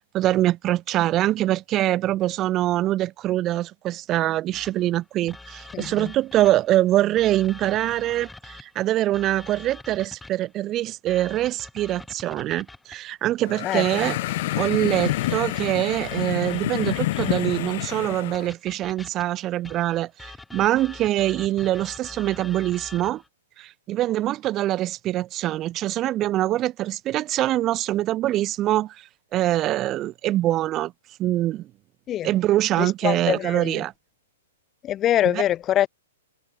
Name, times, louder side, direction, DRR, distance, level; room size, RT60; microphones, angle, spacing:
voice 1, 0.0-14.2 14.6-23.2 23.6-30.9 31.2-31.7 32.2-33.9 35.2-35.4, right 14 dB, 30° right, 0.6 m, -24 dB
sound 1, 4.5-6.8 7.2-10.5 11.1-13.1 13.9-17.6 18.3-23.3, left 2 dB, 5° left, 4.7 m, -44 dB
voice 2, 5.7-6.1 13.6-14.1 32.1-32.3 32.8-33.8 34.8-35.9, left 12 dB, 25° left, 0.5 m, -24 dB
sound 2, 13.4-18.5, left 17 dB, 50° left, 1.0 m, -28 dB
hypercardioid pair, 135°, 0 cm